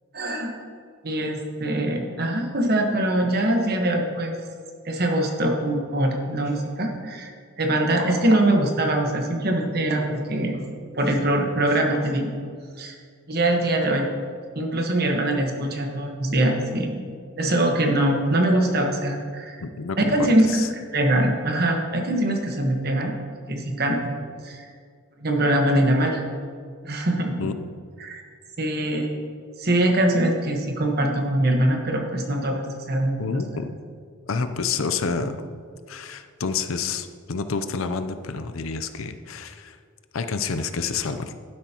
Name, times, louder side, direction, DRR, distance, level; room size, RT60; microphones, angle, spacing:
voice 1, 0.1-0.5 1.0-4.3 4.8-10.6 10.9-12.3 12.8-13.0 13.3-14.1 14.5-17.0 17.4-19.6 20.0-23.1 23.5-24.2 24.4-24.7 25.2-26.2 26.8-27.4 28.0-28.2 28.6-29.2 29.6-33.7 35.2-35.3, right 1 dB, 50° right, 2 dB, 1.4 m, -23 dB
voice 2, 19.6-20.2 20.5-20.7 27.4-27.6 33.2-33.8 34.3-35.4 35.9-39.8 40.1-41.3, left 5 dB, 90° left, 9 dB, 0.6 m, -29 dB
12.0 x 10.5 x 3.0 m, 2.1 s
head